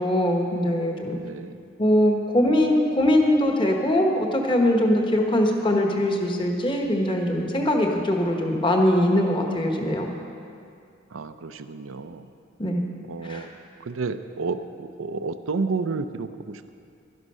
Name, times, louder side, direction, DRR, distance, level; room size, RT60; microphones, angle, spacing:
voice 1, 0.0-1.2 1.8-10.1 12.6-12.8 13.2-13.5, left 1 dB, 25° left, 2 dB, 1.2 m, -22 dB
voice 2, 1.2-1.6 11.1-12.3 13.1-13.5 13.8-16.7, right 4 dB, 80° right, 10 dB, 0.5 m, -31 dB
12.5 x 11.0 x 5.5 m, 2.3 s
head